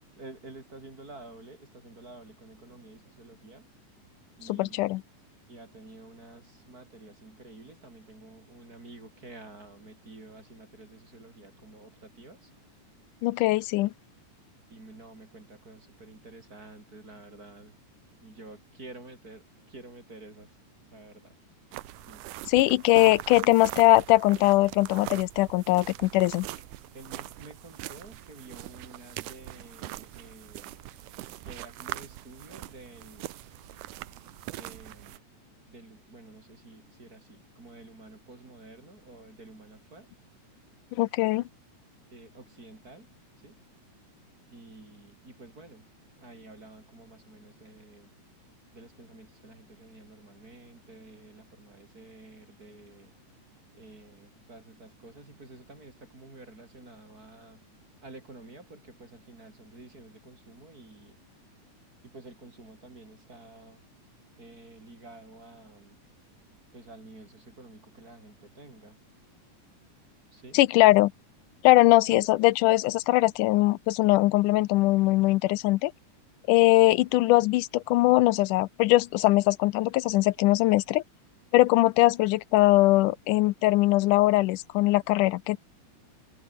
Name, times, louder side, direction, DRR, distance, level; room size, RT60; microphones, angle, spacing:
voice 1, 0.2-3.7 4.4-5.0 5.5-12.8 13.4-13.7 14.7-17.7 18.2-20.6 20.9-21.4 22.1-22.3 26.9-30.9 31.4-33.3 34.6-35.2 35.7-40.1 42.1-43.1 43.4-43.6 44.5-45.9 46.2-48.1 48.7-53.1 53.7-57.6 58.0-61.2 62.0-63.8 64.4-66.0 66.7-69.0 70.3-70.6 72.0-72.1, right 2 dB, 25° right, 4.7 m, -50 dB
voice 2, 4.5-5.0 13.2-13.9 22.5-26.5 40.9-41.4 70.5-71.1 71.6-75.9 76.5-81.0 81.5-85.6, left 18 dB, 85° left, 2.2 m, -21 dB
sound 1, 21.7-35.2, right 17 dB, 85° right, 2.3 m, -42 dB
omnidirectional pair, 3.6 m